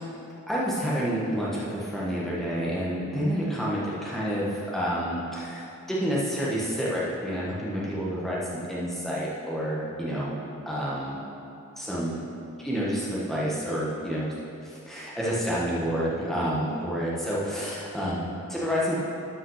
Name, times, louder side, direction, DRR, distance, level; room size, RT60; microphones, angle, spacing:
voice 1, 0.5-10.4 10.6-11.2 11.8-12.2 12.6-14.3 14.6-19.0, equal, ahead, -7 dB, 1.2 m, -29 dB
11.5 x 5.6 x 6.4 m, 2.8 s
head